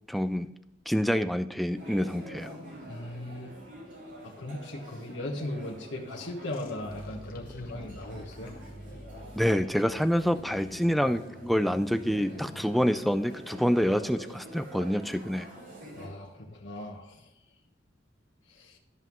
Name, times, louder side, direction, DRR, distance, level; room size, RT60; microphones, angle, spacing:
voice 1, 0.1-0.5 0.9-2.5 9.4-15.5, equal, ahead, 10 dB, 0.4 m, -27 dB
sound 1, 1.7-16.1, equal, 80° right, 3.3 m, -46 dB
voice 2, 2.9-3.5 4.2-8.5 16.0-17.3 18.5-18.8, left 1 dB, 90° left, -2 dB, 1.3 m, -38 dB
sound 2, 6.5-13.1, equal, 50° left, 1.1 m, -46 dB
13.0 x 5.6 x 3.0 m, 0.86 s
head